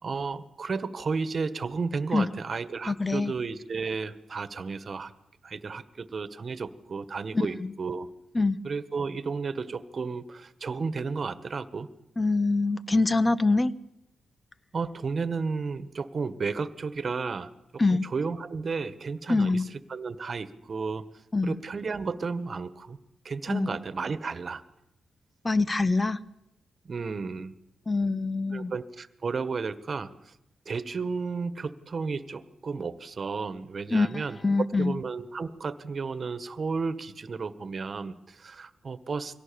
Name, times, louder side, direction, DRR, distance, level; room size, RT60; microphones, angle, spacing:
voice 1, 0.0-5.1 5.4-8.1 8.6-11.9 14.7-17.5 17.9-19.6 19.9-21.0 21.4-23.0 23.2-24.6 26.9-27.5 28.5-30.3 30.6-34.4 34.8-39.4, right 4 dB, 50° right, 13 dB, 1.6 m, -33 dB
voice 2, 2.9-3.3 7.6-7.7 8.3-8.6 12.2-13.7 17.8-18.0 19.3-19.7 21.3-21.6 23.5-23.7 25.4-26.2 27.9-28.7 33.9-34.9, left 3 dB, 30° left, 14 dB, 1.2 m, -24 dB
24.0 x 17.5 x 7.1 m, 0.84 s
cardioid pair, 55°, 0 cm